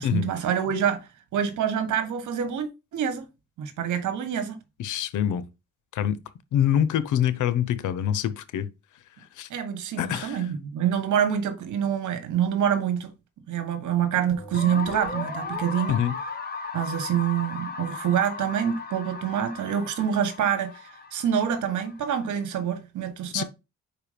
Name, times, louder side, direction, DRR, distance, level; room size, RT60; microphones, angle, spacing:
voice 1, 0.0-3.3 3.6-4.6 9.5-13.1 13.5-16.0 16.7-23.4, right 8 dB, 75° right, 1.5 m, -26 dB
voice 2, 4.8-5.4 5.9-6.2 6.5-8.7 9.4-9.5 10.0-10.4 15.9-16.1 23.3-23.4, left 10 dB, 80° left, 0.8 m, -25 dB
sound 1, 14.3-20.0, left 1 dB, 10° left, 2.9 m, -42 dB
sound 2, 14.5-22.4, left 4 dB, 30° left, 1.2 m, -37 dB
5.1 x 4.7 x 5.1 m
cardioid pair, 90°, 30 cm